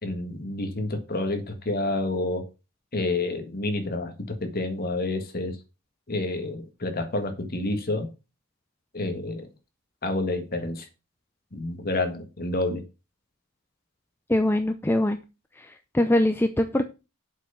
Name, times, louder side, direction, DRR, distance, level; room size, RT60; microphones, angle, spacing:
voice 1, 0.0-2.5 2.9-5.5 6.1-8.1 8.9-9.5 10.0-10.8 11.5-12.8, left 2 dB, 45° left, 1.7 m, -29 dB
voice 2, 14.3-15.2 15.6-16.9, left 1 dB, 10° left, 0.5 m, -23 dB
7.5 x 5.8 x 5.6 m
head